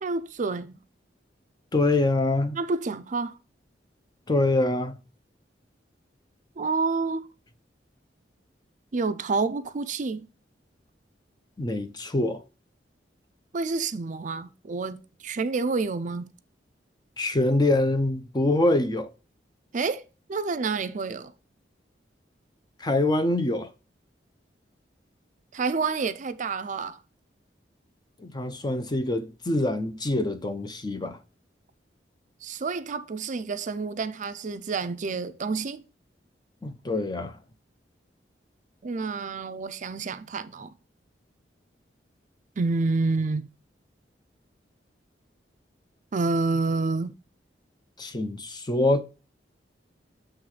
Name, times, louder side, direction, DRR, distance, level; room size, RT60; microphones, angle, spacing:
voice 1, 0.0-0.8 2.5-3.4 6.6-7.3 8.9-10.3 13.5-16.3 19.7-20.0 20.3-21.3 25.5-27.0 32.4-35.8 38.8-40.7 42.6-43.5 46.1-47.1, right 4 dB, 45° right, 0.5 m, -28 dB
voice 2, 1.7-2.6 4.3-5.0 11.6-12.4 17.2-19.1 22.8-23.7 28.2-31.2 36.6-37.4 48.0-49.0, left 2 dB, 25° left, 0.6 m, -25 dB
7.7 x 3.2 x 4.8 m
head